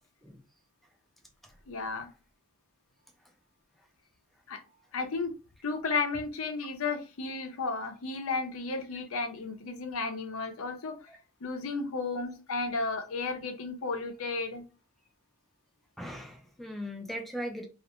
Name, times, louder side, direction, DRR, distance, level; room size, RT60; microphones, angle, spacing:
voice 1, 1.7-2.1 4.5-4.6 4.9-5.3 5.6-11.0 11.4-14.6, left 4 dB, 80° left, 5 dB, 0.6 m, -33 dB
voice 2, 16.0-17.7, equal, ahead, 2 dB, 0.4 m, -39 dB
2.5 x 2.2 x 2.9 m, 0.33 s
head